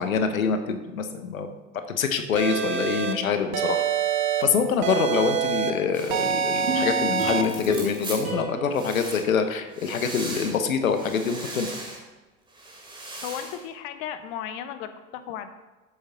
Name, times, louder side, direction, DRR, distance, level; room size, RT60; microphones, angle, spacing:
voice 1, 0.0-1.5 1.9-3.8 4.4-11.7, left 6 dB, 85° left, 8 dB, 1.1 m, -25 dB
sound 1, 2.4-3.1 3.5-4.4 4.8-5.7 6.1-7.4, right 7 dB, 45° right, 1.3 m, -25 dB
sound 2, 5.9-8.3 8.7-9.3 9.7-10.6 10.9-12.0 12.5-13.6, right 2 dB, 10° right, 2.7 m, -39 dB
sound 3, 6.7-10.0 10.4-10.5, right 1 dB, 90° right, 2.3 m, -33 dB
voice 2, 13.2-15.5, left 9 dB, 55° left, 10 dB, 1.1 m, -35 dB
8.3 x 7.9 x 3.9 m, 1.2 s
hypercardioid pair, 90°, 40 cm